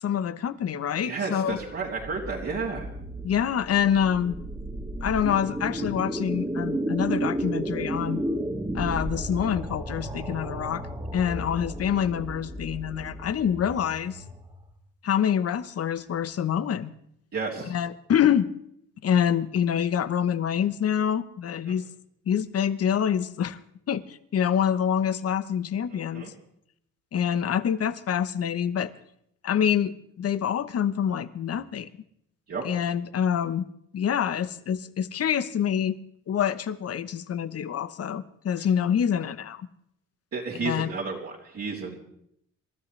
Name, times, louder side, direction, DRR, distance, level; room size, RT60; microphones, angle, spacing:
voice 1, 0.0-1.6 3.2-4.4 5.0-8.2 8.7-10.9 11.1-14.2 15.0-16.9 17.7-18.5 19.0-21.8 22.3-23.6 23.9-26.3 27.1-28.9 29.4-31.9 32.6-33.7 33.9-36.0 36.3-39.7 40.6-40.9, left 8 dB, 55° left, 14 dB, 0.9 m, -26 dB
voice 2, 1.0-2.9 11.5-11.6 17.3-17.7 21.7-21.8 25.9-26.3 32.5-32.6 38.6-38.7 40.3-42.0, right 4 dB, 50° right, -5 dB, 3.1 m, -32 dB
sound 1, 1.6-14.7, right 1 dB, 15° right, 2.1 m, -33 dB
27.5 x 12.5 x 3.3 m, 0.74 s
cardioid pair, 90°, 30 cm